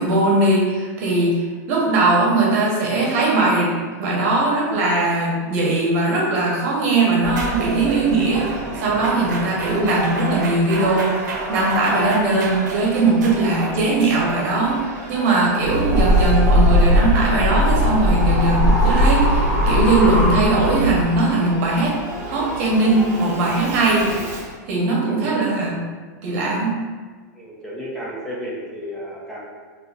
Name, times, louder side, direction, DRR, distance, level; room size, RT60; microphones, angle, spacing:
voice 1, 0.0-21.9 22.3-24.1 24.7-25.8 26.2-26.8, right 2 dB, 50° right, -4 dB, 1.0 m, -20 dB
Singing / Musical instrument, 7.2-24.6, right 1 dB, 35° right, 0.7 m, -33 dB
sound 1, 7.3-19.3, right 2 dB, 85° right, 0.7 m, -32 dB
sound 2, 15.6-21.0, equal, 25° left, 1.3 m, -18 dB
voice 2, 27.3-29.4, equal, 5° left, -8 dB, 0.5 m, -32 dB
3.9 x 2.6 x 2.4 m, 1.5 s
supercardioid pair, 155°, 9 cm